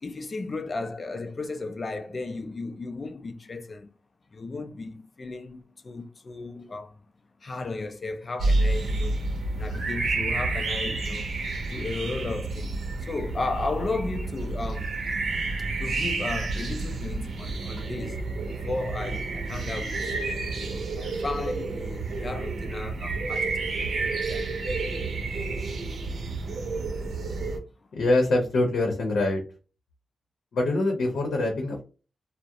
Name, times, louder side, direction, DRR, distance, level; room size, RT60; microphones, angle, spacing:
voice 1, 0.0-3.9 4.3-7.0 7.4-9.2 9.6-11.3 11.7-15.0 15.8-18.2 18.5-20.1 20.6-23.8 24.3-24.5, left 3 dB, 35° left, 0.4 m, -34 dB
sound 1, 8.4-27.6, right 3 dB, 70° right, 0.6 m, -30 dB
voice 2, 27.9-29.4 30.5-31.8, left 2 dB, 85° left, 0.7 m, -24 dB
2.4 x 2.0 x 2.7 m
wide cardioid pair, 110°, 0 cm